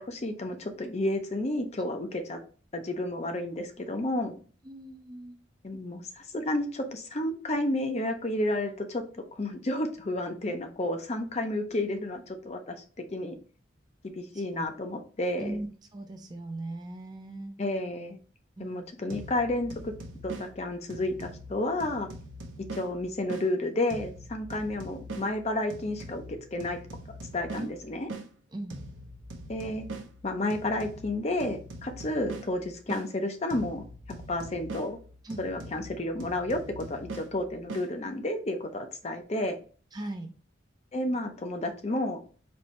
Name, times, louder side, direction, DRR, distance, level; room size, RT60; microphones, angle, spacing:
voice 1, 0.0-2.4 2.7-4.3 5.6-12.7 13.1-13.4 14.0-15.6 17.6-18.2 18.6-19.9 20.2-22.1 22.7-26.8 27.3-28.1 29.5-29.9 30.2-33.8 34.3-35.0 35.4-39.6 40.9-42.2, left 1 dB, 35° left, 6 dB, 0.5 m, -31 dB
voice 2, 4.6-5.4 14.3-14.7 15.4-17.6 18.6-18.8 27.6-27.7 28.5-28.8 35.2-35.4 39.9-40.3, right 2 dB, 20° right, 5 dB, 0.4 m, -39 dB
sound 1, 19.1-23.5 23.9-28.3 28.7-33.1 33.5-37.9, right 1 dB, 80° right, 0.7 m, -43 dB
4.3 x 2.7 x 3.1 m, 0.38 s
head